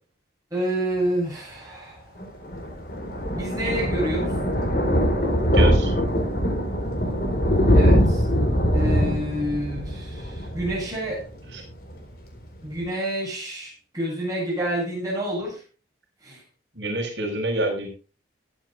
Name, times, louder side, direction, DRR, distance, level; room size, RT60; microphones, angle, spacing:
voice 1, 0.5-2.2 3.4-4.4 7.7-8.3 8.7-11.2 12.6-15.6 16.2-16.4, right 1 dB, 20° right, -3 dB, 7.9 m, -28 dB
Thunder, 2.2-11.6 11.9-12.1 12.4-12.5 12.7-12.8, equal, 50° left, 4.4 m, -22 dB
voice 2, 5.5-5.9 11.5-11.6 16.7-17.9, right 1 dB, 70° right, 1 dB, 5.9 m, -26 dB
21.0 x 9.1 x 2.6 m, 0.33 s
head